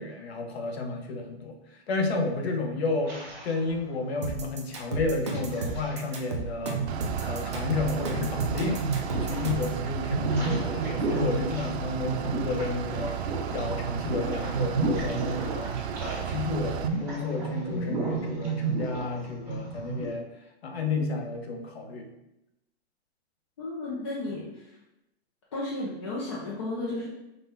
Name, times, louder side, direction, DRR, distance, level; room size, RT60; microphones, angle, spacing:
voice 1, 0.0-1.6 1.9-20.3 20.6-22.1, left 3 dB, 70° left, 4 dB, 0.9 m, -32 dB
sound 1, 3.0-4.1 4.9-6.2 6.6-9.5 9.8-16.4 16.7-20.1, right 3 dB, 5° right, 1.1 m, -32 dB
sound 2, 4.2-9.8, right 3 dB, 30° right, 0.4 m, -33 dB
Bus / Idling, 6.9-16.9, right 8 dB, 80° right, 0.5 m, -34 dB
voice 2, 23.6-24.8 25.5-27.1, left 2 dB, 25° left, -6 dB, 0.5 m, -33 dB
5.4 x 2.2 x 4.3 m, 0.90 s
hypercardioid pair, 180°, 33 cm